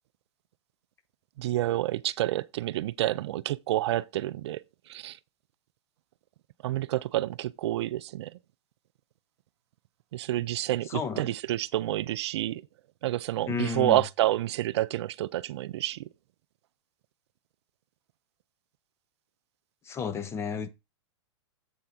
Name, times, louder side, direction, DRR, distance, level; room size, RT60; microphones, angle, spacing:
voice 1, 1.4-4.6 4.9-5.2 6.6-8.3 10.1-12.6 13.0-16.1, right 14 dB, 65° right, 0.4 m, -29 dB
voice 2, 10.9-11.3 13.5-14.0 19.9-20.7, left 5 dB, 15° left, 0.6 m, -32 dB
7.9 x 3.7 x 5.8 m
hypercardioid pair, 135°, 15 cm